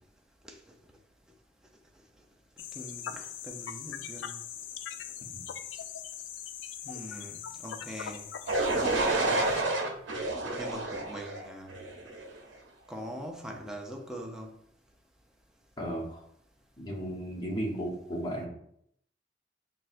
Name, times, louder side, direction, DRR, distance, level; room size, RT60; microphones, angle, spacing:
sound 1, 2.6-9.6, left 9 dB, 85° left, 0.3 m, -41 dB
voice 1, 2.7-4.4 6.8-8.2 9.5-9.9 10.6-11.7 12.9-14.5, equal, 5° right, 0.5 m, -42 dB
sound 2, 8.5-12.4, right 2 dB, 90° right, 0.7 m, -29 dB
voice 2, 15.8-16.2 16.8-18.5, right 1 dB, 25° left, 1.0 m, -35 dB
5.8 x 2.3 x 2.5 m
head